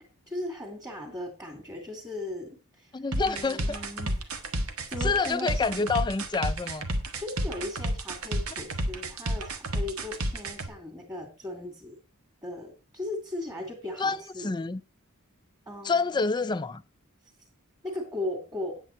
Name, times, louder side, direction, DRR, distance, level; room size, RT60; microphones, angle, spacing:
voice 1, 0.3-2.9 3.2-5.9 7.2-12.0 12.4-14.5 15.7-16.1 17.8-18.8, left 2 dB, 15° right, 2.6 m, -37 dB
voice 2, 2.9-3.8 5.0-6.9 14.0-14.8 15.8-16.8, left 4 dB, 20° left, 0.4 m, -28 dB
sound 1, 3.1-10.7, right 1 dB, 75° right, 1.6 m, -30 dB
9.2 x 8.7 x 4.5 m
head